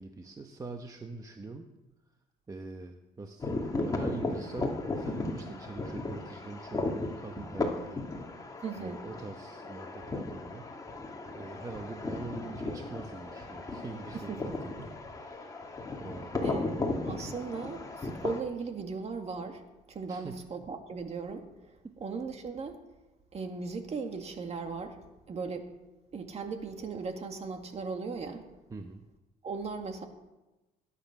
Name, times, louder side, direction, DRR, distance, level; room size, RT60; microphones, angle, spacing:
voice 1, 0.0-1.7 2.5-8.0 8.8-10.7 11.3-15.6 16.0-16.3 20.1-20.4 21.8-22.0 28.7-29.0, right 3 dB, 20° right, 5 dB, 1.1 m, -44 dB
sound 1, 3.4-18.4, left 2 dB, 20° left, 2.5 m, -36 dB
voice 2, 8.6-9.0 14.1-14.6 16.4-19.6 19.9-21.5 22.0-22.8 23.3-25.0 25.3-25.7 26.1-28.4 29.4-30.1, right 4 dB, 40° right, 5 dB, 2.1 m, -37 dB
20.5 x 9.9 x 6.0 m, 1.1 s
cardioid pair, 110°, 17 cm